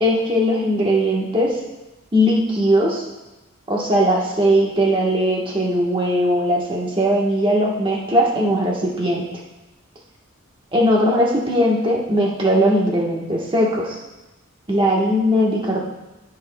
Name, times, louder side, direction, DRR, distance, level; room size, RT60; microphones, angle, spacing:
voice 1, 0.0-1.6 2.1-3.0 3.7-9.3 10.7-14.0 14.7-15.8, equal, 25° right, -2 dB, 1.2 m, -19 dB
14.0 x 5.6 x 2.3 m, 1.0 s
head